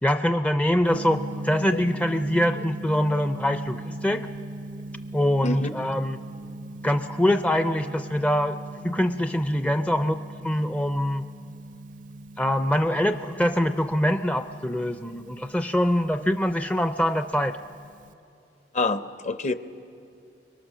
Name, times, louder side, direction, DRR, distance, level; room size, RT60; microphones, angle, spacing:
voice 1, 0.0-4.3 5.1-6.2 6.8-8.6 8.8-10.2 10.4-11.3 12.4-17.5, equal, 10° left, 8 dB, 0.4 m, -24 dB
Gong, 0.9-18.1, right 2 dB, 50° right, 0.5 m, -40 dB
voice 2, 18.7-19.5, left 2 dB, 40° left, 11 dB, 0.7 m, -26 dB
25.0 x 22.5 x 6.3 m, 2.6 s
head